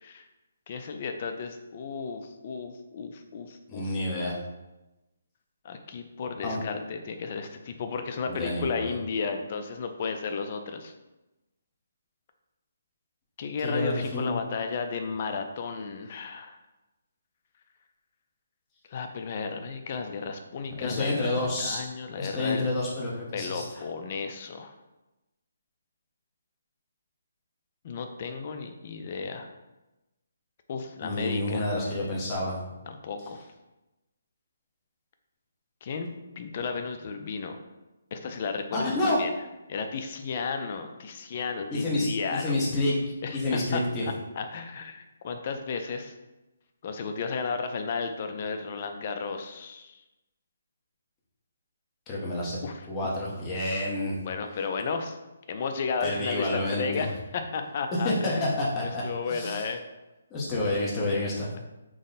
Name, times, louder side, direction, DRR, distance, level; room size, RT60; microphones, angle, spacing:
voice 1, 0.7-4.0 5.6-10.9 13.4-16.6 18.9-22.6 23.3-24.7 27.8-29.5 30.7-31.7 32.9-33.4 35.8-36.1 36.4-37.6 38.1-39.3 39.7-42.6 43.2-46.1 46.8-49.9 52.6-52.8 54.2-55.2 55.5-58.5 58.8-59.8 61.5-61.6, left 5 dB, 35° left, 6 dB, 0.3 m, -33 dB
voice 2, 3.7-4.4 6.4-6.6 8.3-8.9 13.6-14.3 20.8-21.8 22.2-23.9 31.0-32.6 38.7-39.2 41.7-43.0 43.3-44.1 52.1-52.6 52.9-54.2 56.0-57.0 58.0-59.7 60.3-61.5, left 1 dB, 15° left, -5 dB, 0.7 m, -29 dB
3.5 x 2.1 x 4.0 m, 1.0 s
hypercardioid pair, 165°, 0 cm